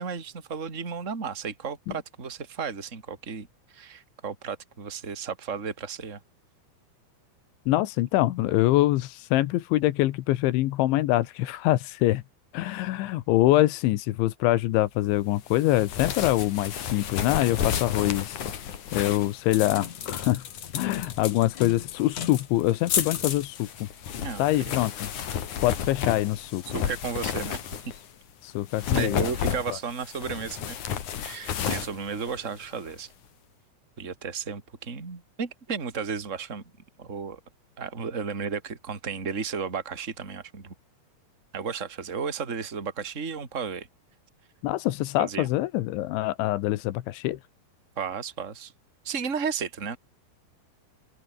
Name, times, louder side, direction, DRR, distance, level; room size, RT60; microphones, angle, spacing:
voice 1, 0.0-6.2 24.2-24.7 26.7-27.9 28.9-30.8 31.2-33.1 34.0-36.6 37.0-37.4 37.8-40.7 41.5-43.9 45.2-45.5 48.0-48.7 49.0-50.0, right 6 dB, 20° right, 2.7 m, -33 dB
voice 2, 7.7-12.2 12.5-20.5 20.7-23.9 24.4-25.1 25.6-26.8 28.4-29.3 29.7-29.8 44.6-47.4, left 16 dB, 80° left, 3.4 m, -25 dB
sound 1, 15.5-28.1 28.6-32.9, left 9 dB, 50° left, 3.0 m, -32 dB
omnidirectional pair, 5.4 m